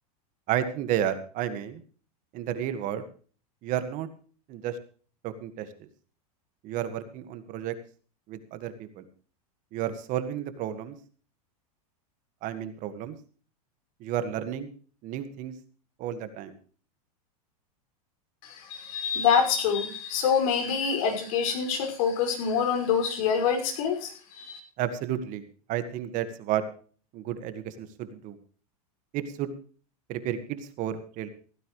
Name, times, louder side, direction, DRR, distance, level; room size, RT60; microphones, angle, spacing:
voice 1, 0.5-1.8 2.3-3.0 3.6-4.1 4.5-4.8 5.2-5.7 6.6-7.7 8.3-9.0 9.7-11.0 12.4-13.2 14.0-14.7 15.0-15.5 16.0-16.5 24.8-25.4 25.7-26.6 27.1-28.4 29.1-29.5 30.1-31.3, right 10 dB, 40° right, 11 dB, 1.7 m, -31 dB
voice 2, 18.4-24.6, left 7 dB, 60° left, 4 dB, 5.8 m, -26 dB
16.5 x 15.0 x 3.2 m, 0.41 s
supercardioid pair, 135°, 20 cm